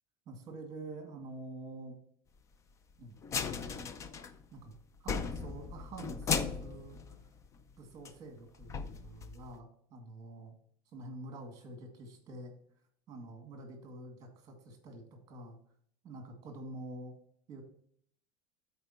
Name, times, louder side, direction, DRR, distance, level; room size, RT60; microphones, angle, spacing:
voice 1, 0.3-2.0 3.0-3.2 3.6-3.9 4.5-4.7 5.0-7.0 7.8-10.5 10.9-12.5 13.1-15.6 16.0-17.1 17.5-17.6, right 2 dB, 25° right, 4 dB, 2.2 m, -47 dB
sound 1, 3.2-4.7 5.0-7.7 8.0-8.1 8.6-9.6, left 6 dB, 20° left, 0.4 m, -37 dB
12.5 x 4.4 x 2.9 m, 0.62 s
supercardioid pair, 155°, 14 cm